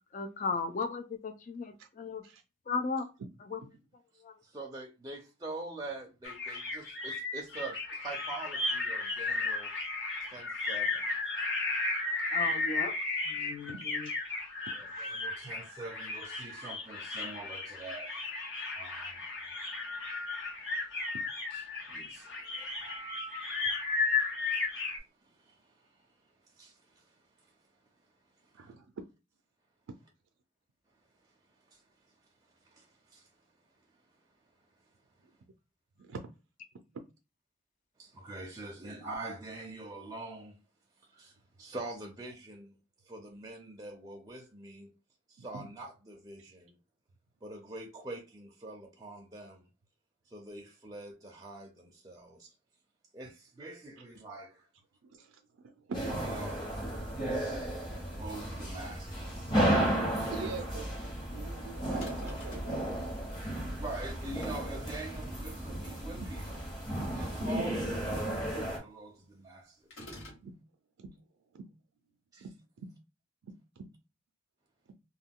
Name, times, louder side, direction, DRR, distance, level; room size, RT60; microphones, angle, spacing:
voice 1, 0.1-2.2 2.7-3.1 3.5-3.6 4.2-4.3 12.3-12.9 13.3-14.1, left 4 dB, 40° left, 0.4 m, -35 dB
voice 2, 4.4-9.7 10.2-11.0 14.7-18.2 18.7-19.5 21.5-21.6 21.9-23.1 25.2-26.0 26.5-27.1 28.6-28.7 31.7-31.8 32.6-33.3 38.0-40.6 41.1-42.7 43.1-44.9 45.3-46.7 47.4-49.6 50.3-52.5 53.1-54.7 56.2-56.7 57.4-59.6 60.3-60.5 63.8-66.4 67.1-69.9 72.3-72.5, right 2 dB, 20° right, 0.5 m, -45 dB
sound 1, 6.2-25.0, left 3 dB, 65° left, 0.9 m, -34 dB
voice 3, 13.4-13.8 28.5-28.9 36.0-36.2 45.4-45.7 55.0-56.2 60.3-60.9 61.3-62.9 66.2-66.3 70.4-70.5 71.0-71.1 71.5-71.7 72.4-72.5 73.4-73.9, right 4 dB, 90° right, 0.4 m, -44 dB
sound 2, 55.9-68.8, right 1 dB, 25° left, 0.9 m, -34 dB
sound 3, 62.0-62.8 69.9-70.5, left 1 dB, 80° left, 1.2 m, -47 dB
2.2 x 2.2 x 3.6 m
head